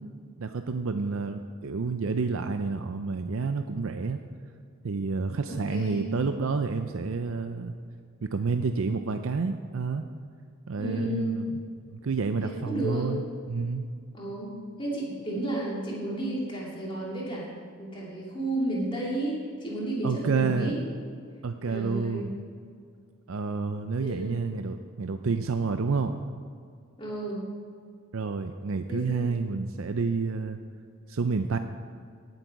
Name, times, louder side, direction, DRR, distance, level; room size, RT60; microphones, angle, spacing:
voice 1, 0.4-4.2 4.8-7.7 8.2-10.0 10.7-11.5 11.9-13.2 13.5-13.8 20.0-20.7 21.4-22.3 23.3-26.2 28.1-30.6 31.1-31.6, right 4 dB, 70° right, 8 dB, 0.5 m, -29 dB
voice 2, 5.5-6.1 10.8-11.4 12.4-13.1 14.1-14.5 14.8-17.5 17.8-20.9 21.7-22.3 24.0-24.4 27.0-27.5 28.9-29.4, right 1 dB, 25° left, -4 dB, 2.6 m, -32 dB
18.0 x 8.1 x 4.7 m, 2.1 s
head